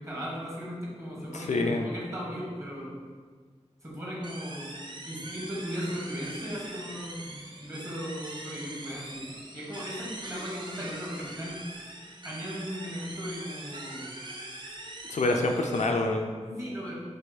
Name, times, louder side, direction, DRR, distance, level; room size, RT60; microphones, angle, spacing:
voice 1, 0.0-2.9 3.8-4.7 5.0-11.7 12.2-14.1 15.2-15.4 16.6-16.9, equal, 25° right, -5 dB, 1.4 m, -37 dB
voice 2, 1.3-1.9 15.1-16.6, left 2 dB, 85° left, 3 dB, 0.4 m, -27 dB
sound 1, 4.2-15.9, right 1 dB, 40° right, 0.5 m, -42 dB
4.4 x 2.5 x 4.0 m, 1.5 s
wide cardioid pair, 70°, 12 cm